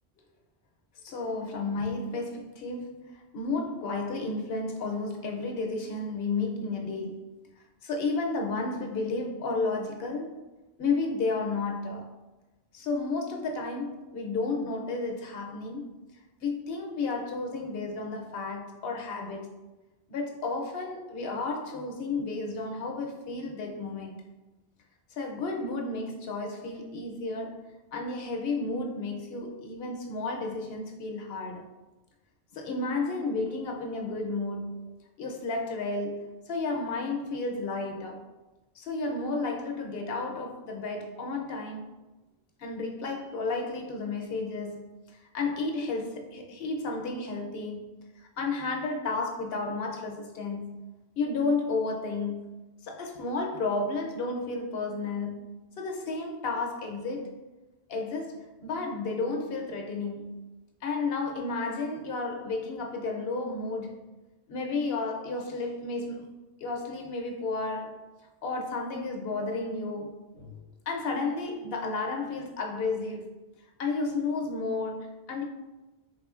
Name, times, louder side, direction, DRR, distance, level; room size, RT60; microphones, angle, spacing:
voice 1, 1.0-7.4 7.8-10.4 10.8-12.1 12.7-15.9 16.4-19.5 20.1-24.2 25.1-31.6 32.5-34.9 35.2-38.2 38.8-41.9 42.6-44.9 45.3-48.0 48.4-50.8 51.2-52.5 52.8-55.5 55.8-57.4 57.9-60.4 60.8-64.1 64.5-66.3 66.6-68.0 68.4-70.5 70.9-73.3 73.8-75.4, left 3 dB, 70° left, 0.9 m, -32 dB
4.8 x 3.4 x 2.4 m
omnidirectional pair, 1.1 m